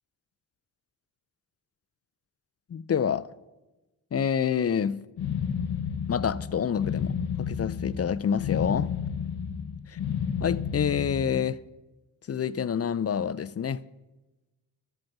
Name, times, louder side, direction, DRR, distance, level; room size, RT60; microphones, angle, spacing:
voice 1, 2.7-3.3 4.1-5.0 6.1-8.9 10.4-11.6 12.3-13.8, left 7 dB, 35° left, 0.5 m, -27 dB
sound 1, 5.2-11.5, left 7 dB, 65° left, 0.8 m, -31 dB
12.5 x 7.9 x 5.9 m
supercardioid pair, 50°, 42 cm